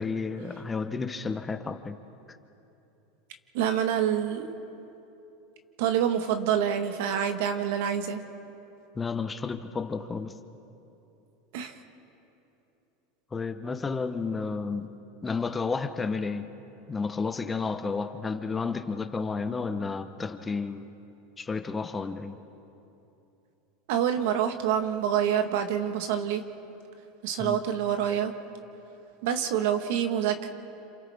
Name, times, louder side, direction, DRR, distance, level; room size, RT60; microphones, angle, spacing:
voice 1, 0.0-1.9 8.9-10.3 13.3-14.9 15.2-16.5 16.9-20.8 21.4-22.4 27.4-27.6, left 4 dB, 15° left, 8 dB, 1.0 m, -31 dB
voice 2, 3.5-4.5 5.8-8.2 11.5-11.7 23.9-26.4 27.2-28.3 29.2-30.5, right 9 dB, 70° right, 7 dB, 1.5 m, -27 dB
28.5 x 27.0 x 3.6 m, 2.9 s
supercardioid pair, 120°, 0 cm